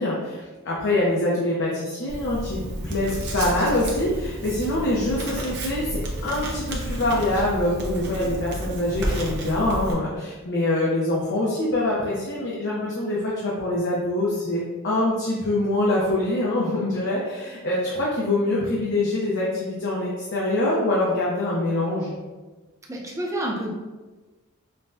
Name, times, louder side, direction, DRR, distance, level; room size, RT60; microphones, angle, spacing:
voice 1, 0.0-22.2, left 1 dB, 55° left, -5 dB, 0.7 m, -24 dB
Writing, 2.1-9.9, right 1 dB, 55° right, 0.7 m, -31 dB
voice 2, 22.9-23.7, right 1 dB, 15° right, -1 dB, 0.5 m, -28 dB
5.4 x 2.2 x 2.6 m, 1.2 s
head